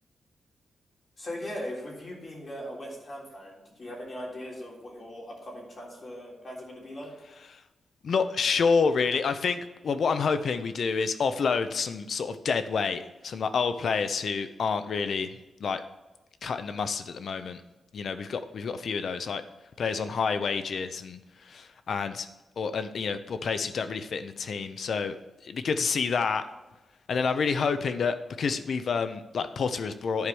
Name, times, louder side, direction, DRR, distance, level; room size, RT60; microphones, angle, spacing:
voice 1, 1.2-7.1, equal, 45° left, -3 dB, 3.5 m, -39 dB
voice 2, 8.0-15.3 15.6-15.8 16.4-17.6 17.9-19.4 19.8-22.3 22.6-25.2 25.4-26.4 27.1-30.3, left 5 dB, 65° left, 11 dB, 0.7 m, -28 dB
10.5 x 4.9 x 6.2 m, 1.1 s
cardioid pair, 95°, 0 cm